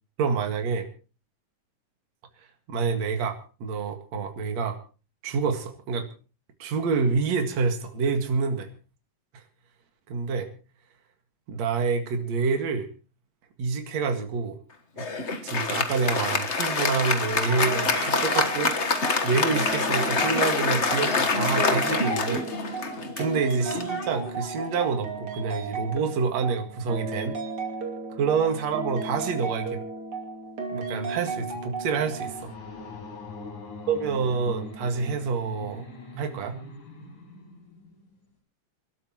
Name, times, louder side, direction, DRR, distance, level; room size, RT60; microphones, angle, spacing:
voice 1, 0.2-0.9 2.7-4.8 5.2-6.1 6.6-8.7 10.1-10.5 11.5-12.9 13.6-14.6 15.0-15.1 15.4-18.8 19.2-22.5 23.2-27.4 28.2-29.8 30.7-32.5 33.9-35.8 36.2-36.6, right 5 dB, 65° right, 5 dB, 3.1 m, -27 dB
Applause, 15.0-24.8, left 4 dB, 45° left, 0.8 m, -26 dB
sound 1, 17.7-32.4, right 4 dB, 45° right, 3.5 m, -34 dB
sound 2, 31.0-38.3, left 3 dB, 85° left, 7.2 m, -43 dB
28.5 x 13.0 x 3.0 m, 0.36 s
omnidirectional pair, 3.4 m